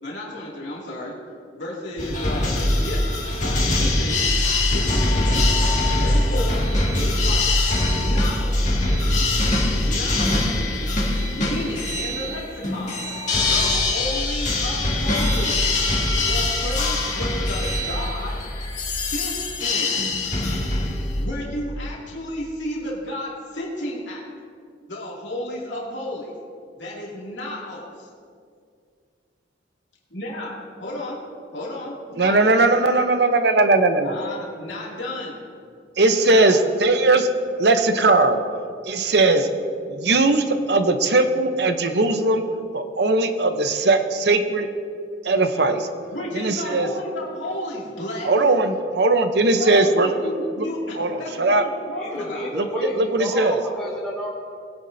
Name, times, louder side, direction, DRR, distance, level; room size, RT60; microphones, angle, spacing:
voice 1, 0.0-1.1 1.5-3.1 3.4-4.2 4.6-5.5 6.0-6.7 6.9-7.6 8.0-8.8 9.7-10.6 11.2-13.0 13.4-15.6 16.2-18.4 18.9-20.1 21.2-24.3 24.9-26.3 26.8-28.1 30.1-31.2 31.5-32.6 34.0-35.4 36.3-36.6 39.1-39.2 46.1-48.3 49.6-52.5, left 1 dB, 80° left, -5 dB, 2.6 m, -32 dB
sound 1, 2.0-21.3, left 2 dB, 40° left, 2.0 m, -22 dB
voice 2, 32.2-34.2 36.0-37.3 37.6-38.4 38.8-39.5 39.9-42.4 42.7-44.7 45.2-45.9 46.3-46.9 48.2-50.1 50.6-50.7 51.0-51.6 52.5-53.6, right 2 dB, 60° right, 8 dB, 0.8 m, -19 dB
voice 3, 51.9-54.3, equal, 5° left, -8 dB, 1.5 m, -30 dB
20.5 x 9.7 x 2.7 m, 2.3 s
head